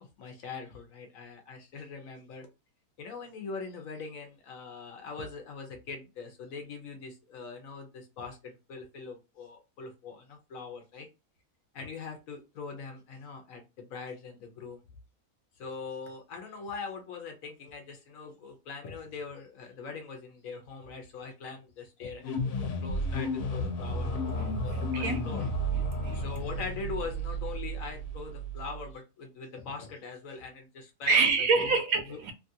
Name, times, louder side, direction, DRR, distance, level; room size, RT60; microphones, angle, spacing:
voice 1, 0.0-2.5 3.0-11.1 11.7-14.8 15.6-25.4 26.1-31.3 31.5-31.7 32.1-32.2, left 4 dB, 65° left, 1.0 m, -42 dB
sound 1, 22.2-28.9, equal, 80° left, 1.3 m, -32 dB
voice 2, 24.3-26.2 31.1-32.3, right 4 dB, 70° right, 1.0 m, -28 dB
3.0 x 2.4 x 2.6 m
omnidirectional pair, 1.7 m